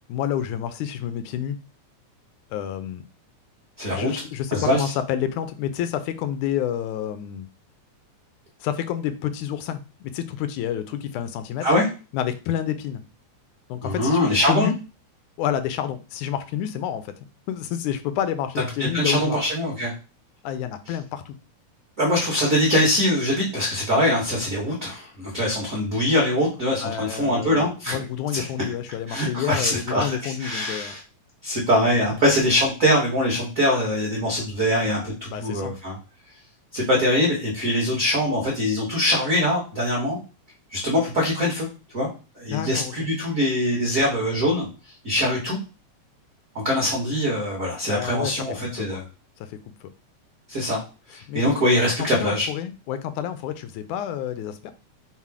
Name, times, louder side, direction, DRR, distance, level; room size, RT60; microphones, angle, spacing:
voice 1, 0.1-1.6 2.5-3.0 3.9-7.5 8.6-11.7 12.1-13.0 13.7-14.7 15.4-17.1 17.5-19.4 20.4-21.3 26.8-31.0 35.3-35.8 42.5-42.9 47.9-48.3 48.8-49.0 49.4-49.9 51.3-51.4 52.0-54.7, left 10 dB, 80° left, 10 dB, 1.9 m, -29 dB
voice 2, 3.8-4.1 4.5-4.8 11.6-11.9 13.8-14.7 18.8-19.9 22.0-28.0 28.3-28.4 29.1-31.0 31.4-36.0 36.7-40.2 40.7-41.7 41.9-42.1 42.4-44.7 45.0-45.6 46.6-49.0 50.5-50.8 51.1-52.5, left 1 dB, 65° right, -4 dB, 0.8 m, -23 dB
5.6 x 2.0 x 4.6 m, 0.32 s
omnidirectional pair, 3.5 m